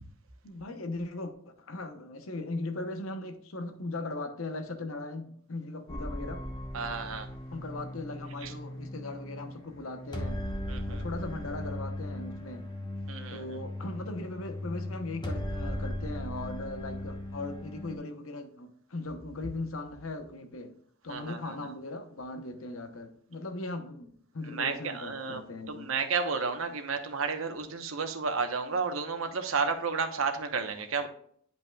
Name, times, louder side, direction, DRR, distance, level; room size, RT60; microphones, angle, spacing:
voice 1, 0.4-6.4 7.5-10.4 10.9-12.7 13.3-20.8 21.0-25.9, left 2 dB, 90° left, 1.0 m, -39 dB
sound 1, 5.9-18.0, left 1 dB, 20° left, 1.0 m, -38 dB
voice 2, 6.7-7.3 8.4-8.5 10.7-11.0 13.1-13.6 21.1-21.7 24.4-31.1, right 5 dB, 80° right, 1.0 m, -32 dB
10.5 x 5.4 x 2.4 m
head